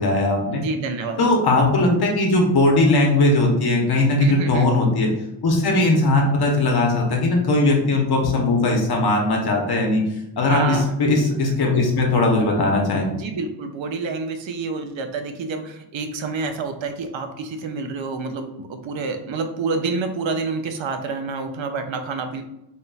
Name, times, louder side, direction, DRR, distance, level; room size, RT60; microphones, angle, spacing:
voice 1, 0.0-0.6 1.2-5.1 5.4-10.0 10.4-13.1, left 2 dB, 60° left, 0 dB, 1.0 m, -19 dB
voice 2, 0.5-1.2 4.2-4.7 10.4-10.9 11.4-11.9 13.1-22.4, right 4 dB, 90° right, 6 dB, 0.7 m, -28 dB
4.0 x 3.6 x 2.3 m, 0.85 s
wide cardioid pair, 155°, 44 cm